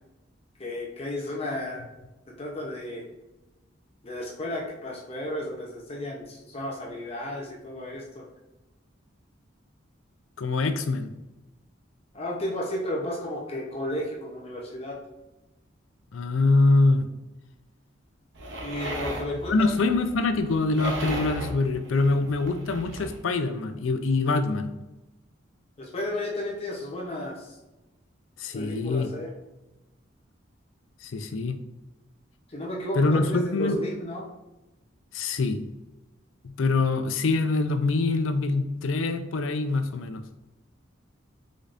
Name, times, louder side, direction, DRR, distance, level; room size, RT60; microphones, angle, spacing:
voice 1, 0.6-1.8 2.3-3.0 4.0-8.2 12.1-15.0 18.6-19.7 25.8-27.5 28.5-29.3 32.5-34.3, left 1 dB, 30° left, -2 dB, 0.8 m, -33 dB
voice 2, 10.4-11.1 16.1-17.1 19.5-24.7 28.4-29.1 31.0-31.6 33.0-33.8 35.1-35.6 36.6-40.2, left 3 dB, 90° left, 9 dB, 0.5 m, -24 dB
sound 1, 18.3-23.2, right 1 dB, 70° right, 0.9 m, -36 dB
5.1 x 3.9 x 2.5 m, 1.0 s
head